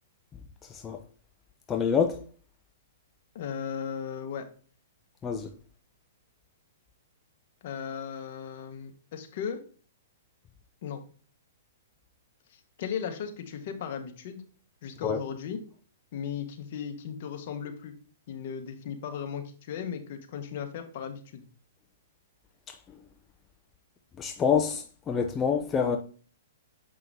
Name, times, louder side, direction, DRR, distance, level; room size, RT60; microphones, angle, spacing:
voice 1, 1.7-2.2 5.2-5.5 15.0-15.2 24.2-26.0, left 7 dB, 20° left, 0.7 m, -26 dB
voice 2, 3.3-4.5 7.6-9.6 10.8-11.0 12.5-14.4 14.8-15.6 16.1-17.9 18.3-21.4, left 7 dB, 55° left, 1.4 m, -36 dB
7.5 x 5.5 x 2.7 m
hypercardioid pair, 130°, 0 cm